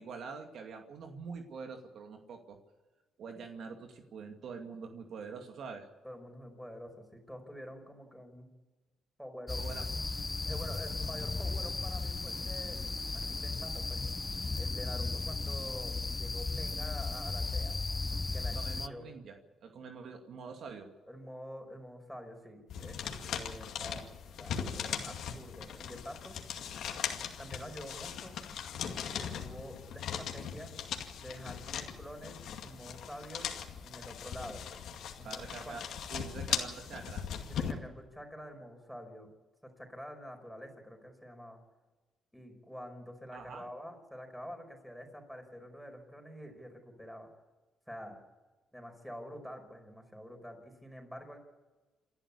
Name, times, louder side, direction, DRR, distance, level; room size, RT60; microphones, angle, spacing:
voice 1, 0.0-2.6 3.2-5.9 9.6-9.9 18.5-20.9 35.2-35.8 36.1-37.2 43.3-43.6, right 5 dB, 65° right, 4 dB, 2.3 m, -45 dB
voice 2, 6.0-8.5 9.2-9.6 10.5-12.8 13.1-14.1 14.6-17.8 18.3-19.1 21.1-26.4 27.4-28.4 29.2-30.7 31.2-32.4 32.6-33.5 33.8-34.6 35.2-35.8 37.4-39.3 39.6-41.6 42.3-47.3 47.9-48.2 48.7-51.4, equal, ahead, 4 dB, 5.3 m, -47 dB
sound 1, 9.5-18.9, left 3 dB, 25° left, 0.7 m, -35 dB
sound 2, 22.7-37.7, left 8 dB, 75° left, 2.3 m, -39 dB
28.0 x 11.5 x 8.5 m, 1.3 s
cardioid pair, 90°, 0 cm